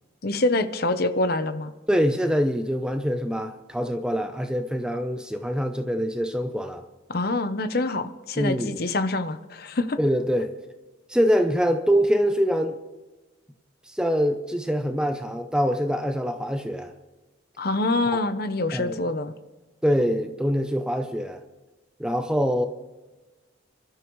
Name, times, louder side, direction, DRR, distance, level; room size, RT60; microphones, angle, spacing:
voice 1, 0.2-1.7 7.1-10.0 17.6-19.3, left 2 dB, 50° left, 10 dB, 0.8 m, -25 dB
voice 2, 1.9-6.8 8.4-8.8 10.0-10.5 11.1-12.8 13.9-16.9 18.7-19.0 19.8-21.4 22.0-22.7, equal, 5° right, 6 dB, 0.6 m, -24 dB
24.5 x 12.5 x 3.2 m, 1.2 s
head